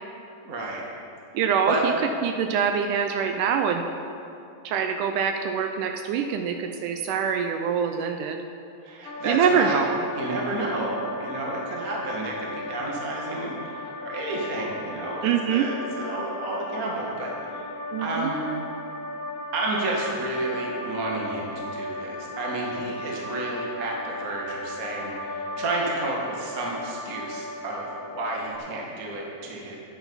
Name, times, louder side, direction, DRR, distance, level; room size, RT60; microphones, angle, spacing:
voice 1, 0.4-0.8 1.6-1.8 8.8-9.8 10.1-18.4 19.5-29.8, right 2 dB, 45° right, -2 dB, 1.1 m, -31 dB
voice 2, 1.3-1.9 2.2-3.8 4.7-8.4 9.2-10.0 15.2-15.7 17.9-18.3, right 7 dB, 80° right, 6 dB, 1.8 m, -24 dB
sound 1, 9.0-28.6, left 1 dB, 70° left, 2.5 m, -36 dB
12.0 x 9.1 x 5.4 m, 2.8 s
omnidirectional pair, 4.2 m